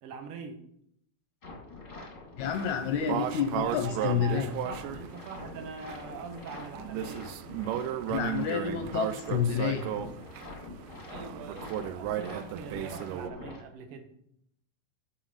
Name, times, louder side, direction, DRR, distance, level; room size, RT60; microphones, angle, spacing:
voice 1, 0.0-0.6 3.3-7.3 11.1-14.2, right 5 dB, 65° right, 5 dB, 1.4 m, -43 dB
sound 1, 1.4-13.6, left 3 dB, 35° left, 0.8 m, -45 dB
voice 2, 2.4-4.5 8.1-9.9, left 8 dB, 80° left, 7 dB, 1.8 m, -29 dB
sound 2, 2.4-13.3, right 11 dB, 80° right, 2.1 m, -35 dB
11.0 x 5.1 x 5.1 m, 0.73 s
omnidirectional pair, 3.9 m